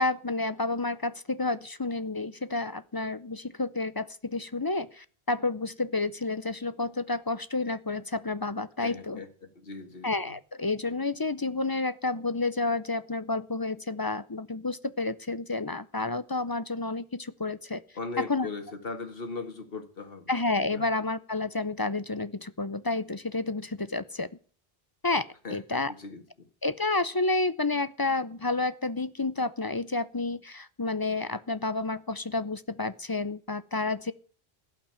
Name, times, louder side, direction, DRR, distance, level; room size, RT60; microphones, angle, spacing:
voice 1, 0.0-9.2 10.0-17.8 18.2-18.5 20.3-24.3 25.0-25.9 26.6-34.1, left 3 dB, 25° left, 15 dB, 0.6 m, -30 dB
voice 2, 8.8-9.3 9.6-10.3 17.9-20.3 20.7-20.9 25.4-26.5, left 3 dB, 60° left, 6 dB, 2.2 m, -39 dB
16.0 x 6.0 x 9.0 m, 0.41 s
omnidirectional pair, 1.1 m